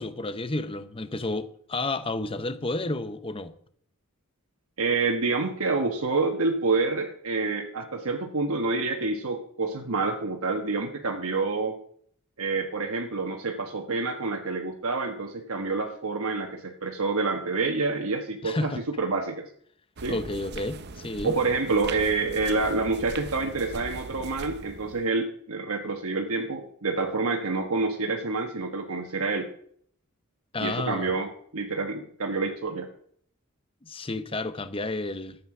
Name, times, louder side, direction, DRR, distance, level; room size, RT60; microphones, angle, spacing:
voice 1, 0.0-3.5 18.4-18.8 20.1-21.4 30.5-31.2 33.8-35.4, left 2 dB, 25° left, 0.8 m, -31 dB
voice 2, 4.8-11.8 12.4-18.7 19.0-19.4 20.0-20.2 21.2-29.5 30.6-32.9, right 3 dB, 80° right, 1.3 m, -28 dB
sound 1, 20.0-25.1, right 4 dB, 50° right, 0.7 m, -40 dB
13.0 x 8.5 x 6.0 m
head